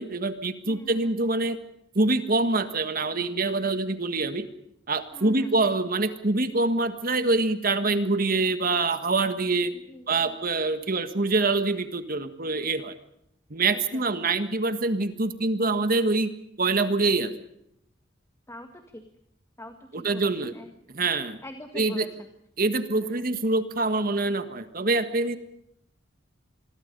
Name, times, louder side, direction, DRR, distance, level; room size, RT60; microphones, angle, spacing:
voice 1, 0.0-1.6 1.9-4.5 4.9-9.7 10.1-12.9 13.5-16.3 16.6-17.3 19.9-20.5 20.9-21.4 21.7-22.1 22.6-25.4, right 3 dB, 50° right, 10 dB, 1.6 m, -25 dB
voice 2, 0.6-1.1 5.1-5.6 9.7-10.4 13.7-14.3 18.5-19.0 19.6-20.7 21.4-22.3 22.9-23.3, left 1 dB, 15° left, 6 dB, 1.8 m, -43 dB
27.0 x 22.0 x 5.4 m, 0.76 s
head